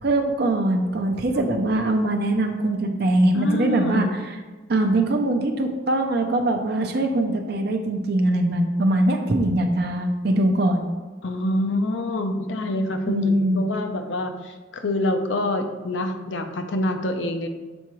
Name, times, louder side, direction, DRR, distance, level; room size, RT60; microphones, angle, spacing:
voice 1, 0.0-4.4 4.7-10.8 13.1-13.6, right 1 dB, 55° right, 4 dB, 0.5 m, -22 dB
voice 2, 3.3-4.1 11.2-17.5, left 1 dB, 70° left, 6 dB, 0.6 m, -26 dB
7.0 x 4.6 x 3.0 m, 1.3 s
head